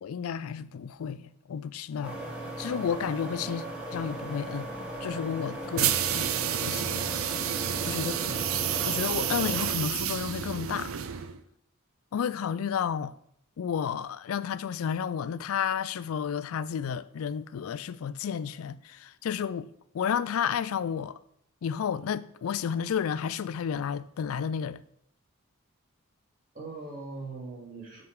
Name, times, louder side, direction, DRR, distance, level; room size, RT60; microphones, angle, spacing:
voice 1, 0.0-3.6 3.9-4.7 5.0-6.3 6.6-7.2 7.9-8.4 8.8-10.9 12.1-13.1 13.6-19.7 19.9-21.2 21.6-24.8, left 7 dB, 80° left, 0.4 m, -32 dB
sound 1, 2.0-9.7, right 1 dB, 5° right, 1.5 m, -38 dB
sound 2, 5.8-11.4, right 9 dB, 80° right, 0.5 m, -30 dB
voice 2, 7.6-8.0 26.5-28.0, right 3 dB, 40° right, 3.1 m, -41 dB
7.9 x 5.2 x 4.8 m
head